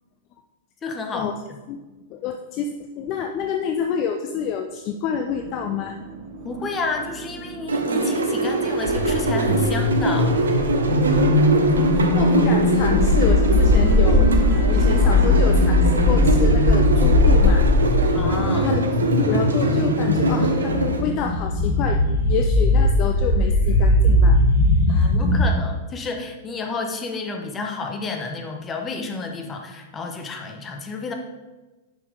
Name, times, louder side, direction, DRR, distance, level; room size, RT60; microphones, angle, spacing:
voice 1, 0.8-1.6 6.4-10.7 18.1-18.7 24.9-31.1, left 3 dB, 20° left, 4 dB, 1.2 m, -31 dB
voice 2, 2.1-6.0 11.5-14.4 14.7-17.6 18.0-18.2 18.6-22.0 22.3-24.4 24.9-25.1, left 7 dB, 40° left, 5 dB, 0.6 m, -28 dB
sound 1, 5.3-19.0, right 5 dB, 40° right, 1.2 m, -38 dB
sound 2, 7.7-21.0, right 2 dB, 75° right, 0.9 m, -23 dB
sound 3, 8.8-25.4, left 2 dB, 60° left, 1.8 m, -19 dB
10.0 x 6.1 x 3.6 m, 1.2 s
figure-of-eight pair, 100°, 0 cm